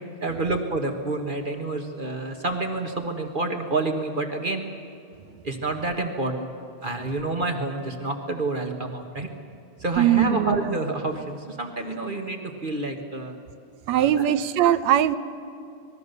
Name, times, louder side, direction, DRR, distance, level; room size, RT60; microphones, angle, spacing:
voice 1, 0.2-4.6 5.4-6.5 6.8-9.3 9.8-13.3 13.9-14.3, right 2 dB, 45° right, 3 dB, 0.6 m, -28 dB
voice 2, 10.0-10.6 13.9-15.2, right 11 dB, 75° right, 12 dB, 1.9 m, -20 dB
26.5 x 20.5 x 6.9 m, 2.6 s
omnidirectional pair, 3.4 m